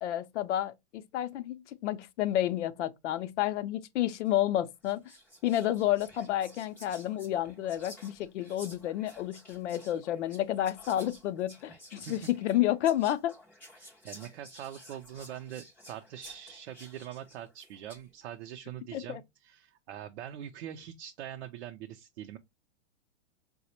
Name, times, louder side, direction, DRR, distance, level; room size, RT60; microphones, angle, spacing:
voice 1, 0.0-5.0 5.4-13.3 18.9-19.2, left 13 dB, 80° left, 0.5 m, -30 dB
Whispering, 4.3-4.5 4.8-18.1, equal, 5° left, 0.3 m, -53 dB
voice 2, 13.8-22.4, right 10 dB, 65° right, 0.5 m, -43 dB
4.0 x 2.0 x 2.8 m
supercardioid pair, 160°, 35 cm